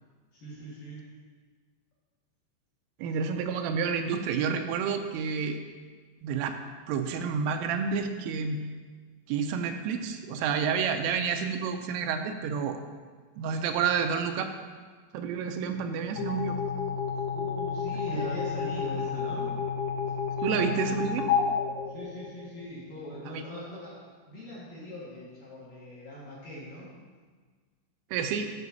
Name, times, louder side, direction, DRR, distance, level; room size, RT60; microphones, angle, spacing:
voice 1, 0.3-1.1 17.3-19.5 21.9-23.9 24.3-26.9, equal, 60° left, -8 dB, 2.5 m, -41 dB
voice 2, 3.0-5.6 6.2-6.6 6.9-8.6 9.3-12.8 13.4-14.5 15.1-16.6 18.0-18.2 20.4-21.3 23.3-23.4 28.1-28.5, right 6 dB, 85° right, 6 dB, 3.1 m, -29 dB
sound 1, 16.2-22.7, left 6 dB, 85° left, 3.4 m, -31 dB
12.5 x 6.0 x 2.7 m, 1.5 s
omnidirectional pair, 5.7 m